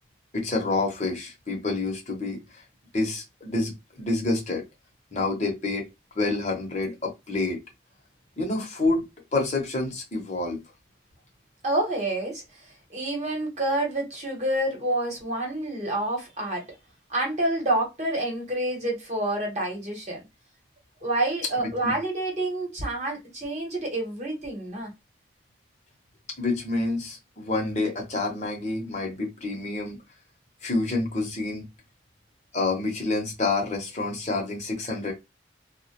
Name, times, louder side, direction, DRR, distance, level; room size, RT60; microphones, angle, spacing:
voice 1, 0.3-2.6 2.9-4.6 5.1-5.8 6.2-7.6 8.4-9.0 9.3-10.6 21.8-21.9 26.4-30.0 30.6-31.6 32.5-35.1, left 2 dB, 40° left, 0.7 m, -28 dB
voice 2, 11.6-12.4 12.9-16.6 17.1-20.2 21.0-24.9, right 1 dB, 40° right, 1.0 m, -28 dB
2.2 x 2.1 x 2.8 m
head